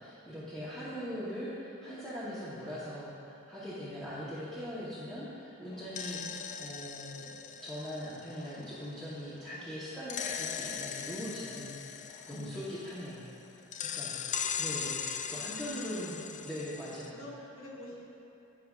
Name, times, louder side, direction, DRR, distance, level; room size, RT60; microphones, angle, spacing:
voice 1, 0.0-7.3 7.6-13.6 13.9-14.2 14.6-16.2 16.4-17.2, equal, 5° left, -12 dB, 1.0 m, -41 dB
sound 1, 5.7-9.4 10.1-13.3 13.7-17.1, left 7 dB, 35° left, 0.3 m, -39 dB
voice 2, 15.7-16.3 16.9-17.9, left 1 dB, 90° left, -4 dB, 1.7 m, -48 dB
9.4 x 8.9 x 2.4 m, 2.9 s
head